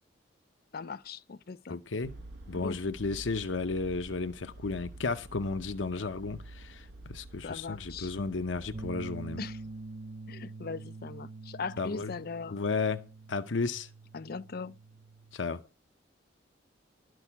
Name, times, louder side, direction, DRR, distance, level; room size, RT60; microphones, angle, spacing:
voice 1, 0.7-1.8 2.6-2.8 7.4-8.1 9.4-9.6 10.3-12.6 14.1-14.7, left 4 dB, 55° left, 0.5 m, -39 dB
voice 2, 1.7-2.1 2.5-9.4 11.8-12.1 12.5-13.9 15.3-15.7, left 4 dB, 90° left, 0.8 m, -33 dB
sound 1, 2.0-10.3, right 2 dB, 65° right, 1.6 m, -49 dB
sound 2, 8.7-15.4, right 3 dB, 35° right, 0.7 m, -45 dB
12.0 x 6.3 x 7.0 m
head